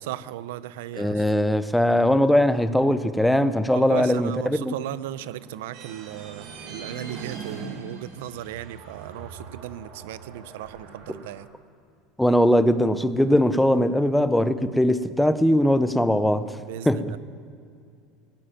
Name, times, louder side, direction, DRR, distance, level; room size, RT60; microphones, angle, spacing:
voice 1, 0.0-1.2 3.7-11.5 16.7-17.2, right 13 dB, 90° right, 16 dB, 0.6 m, -36 dB
voice 2, 1.0-4.7 11.1-11.2 12.2-16.5 16.9-17.2, left 1 dB, ahead, 12 dB, 0.6 m, -20 dB
sound 1, 4.5-8.2, right 4 dB, 40° right, 1.7 m, -42 dB
sound 2, 5.7-11.5, right 4 dB, 65° right, 3.2 m, -45 dB
18.0 x 8.6 x 9.2 m, 2.4 s
cardioid pair, 160°, 0 cm